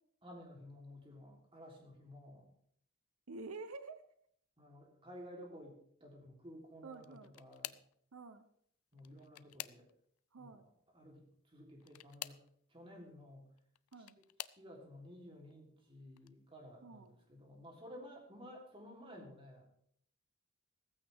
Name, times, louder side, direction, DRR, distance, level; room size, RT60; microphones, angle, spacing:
voice 1, 0.2-2.5 4.6-7.7 8.9-9.9 10.4-10.7 10.9-12.4 12.7-13.5 14.5-19.7, equal, 25° right, 0 dB, 3.5 m, -54 dB
voice 2, 3.3-4.0 6.8-7.3 8.1-8.4 10.3-10.6 13.9-14.2 16.8-17.1, right 3 dB, 85° right, 10 dB, 0.8 m, -49 dB
sound 1, 6.9-8.0 8.9-10.2 11.8-12.5 13.6-14.7 15.4-15.8 16.2-16.3 17.6-17.7, left 14 dB, 85° left, 0.5 m, -49 dB
15.5 x 14.5 x 3.6 m, 0.65 s
head